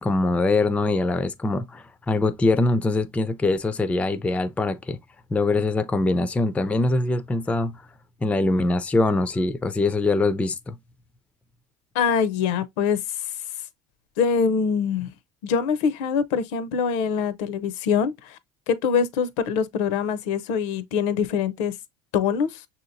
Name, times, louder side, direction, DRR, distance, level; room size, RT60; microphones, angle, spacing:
voice 1, 0.0-5.0 5.3-7.8 8.2-10.8, left 2 dB, 10° left, 0.3 m, -23 dB
voice 2, 11.9-13.0 14.2-15.1 15.4-18.4 18.7-21.7 22.1-22.6, left 6 dB, 75° left, 0.6 m, -24 dB
6.1 x 2.8 x 2.5 m
supercardioid pair, 120°, 16 cm